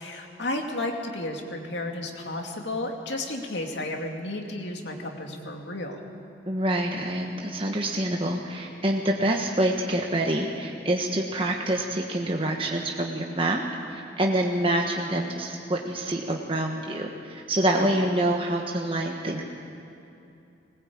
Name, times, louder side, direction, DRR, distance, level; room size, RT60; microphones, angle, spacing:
voice 1, 0.0-6.0 17.8-17.9, left 2 dB, 70° left, 2 dB, 2.5 m, -32 dB
voice 2, 6.5-13.6 13.9-19.4, right 1 dB, 30° right, 1 dB, 1.3 m, -26 dB
20.5 x 20.0 x 8.6 m, 2.7 s
head